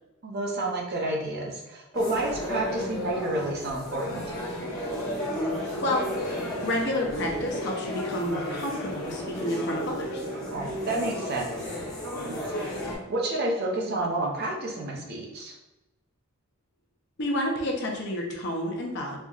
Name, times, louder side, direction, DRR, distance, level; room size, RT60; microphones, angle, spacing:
voice 1, 0.2-4.3 10.5-11.5 12.2-12.4 12.7-15.6, right 2 dB, 45° right, -1 dB, 0.6 m, -30 dB
sound 1, 1.9-12.9, equal, 15° left, 0.8 m, -33 dB
voice 2, 6.6-10.2 17.2-19.2, left 1 dB, 50° left, 0 dB, 0.7 m, -29 dB
4.4 x 2.7 x 2.4 m, 0.98 s
head